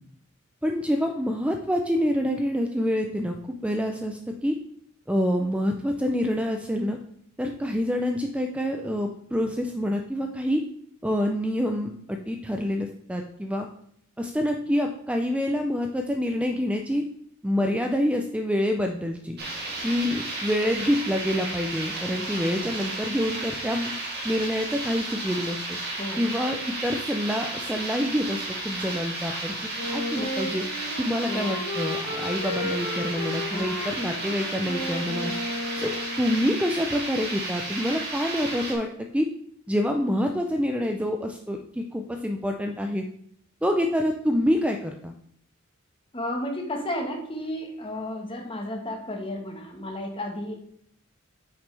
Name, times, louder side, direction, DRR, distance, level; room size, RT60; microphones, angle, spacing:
voice 1, 0.6-3.4 3.6-4.6 5.1-7.0 7.4-10.6 11.0-13.7 14.2-17.0 17.4-19.4 19.8-23.9 24.2-25.8 26.2-30.6 31.0-35.3 35.8-35.9 36.2-38.9 39.1-39.3 39.7-43.0 43.6-45.1, equal, 5° right, 3 dB, 0.4 m, -27 dB
sound 1, 19.4-38.7, right 2 dB, 50° right, 2.2 m, -33 dB
Wind instrument woodwind instrument, 29.7-36.5, left 1 dB, 50° left, 1.8 m, -34 dB
voice 2, 31.2-31.6 33.5-33.7 34.1-34.2 46.1-50.5, left 1 dB, 25° left, 2 dB, 1.3 m, -33 dB
8.6 x 6.0 x 3.3 m, 0.67 s
head